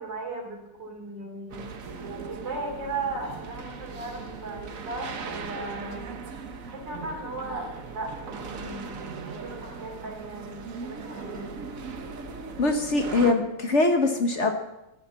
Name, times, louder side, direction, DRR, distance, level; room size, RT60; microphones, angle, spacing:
voice 1, 0.0-1.7 2.2-6.0 6.7-11.5, right 2 dB, 80° right, 1 dB, 3.8 m, -37 dB
sound 1, 1.5-13.3, right 5 dB, 50° right, 1.4 m, -38 dB
voice 2, 12.6-14.5, left 3 dB, 45° left, 5 dB, 1.3 m, -23 dB
14.0 x 8.9 x 7.5 m, 0.93 s
omnidirectional pair, 1.9 m